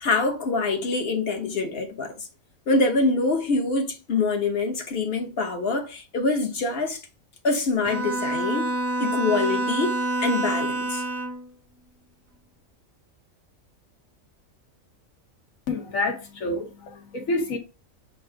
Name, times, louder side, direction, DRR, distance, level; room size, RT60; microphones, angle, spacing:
voice 1, 0.0-2.3 2.7-7.0 7.4-8.7 9.0-11.0, left 3 dB, 50° left, 1.2 m, -25 dB
Bowed string instrument, 7.9-11.5, right 1 dB, 15° right, 0.5 m, -27 dB
voice 2, 15.7-17.6, left 2 dB, 80° left, 1.7 m, -28 dB
7.7 x 2.6 x 4.7 m
omnidirectional pair, 1.4 m